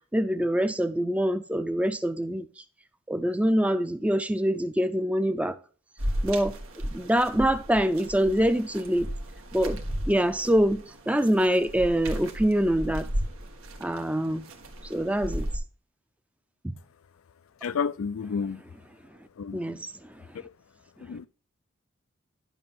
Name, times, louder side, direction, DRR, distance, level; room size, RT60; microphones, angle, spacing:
voice 1, 0.1-2.6 3.1-5.6 6.2-6.6 6.9-9.1 9.5-13.1 13.8-14.5 14.8-15.5 16.6-16.7 19.5-20.3, equal, 5° right, 0.5 m, -25 dB
sound 1, 6.0-15.6, equal, 85° right, 1.5 m, -35 dB
voice 2, 17.6-18.6 19.4-19.8 20.3-20.5 21.0-21.3, left 6 dB, 80° left, 0.4 m, -31 dB
11.0 x 6.1 x 3.6 m
head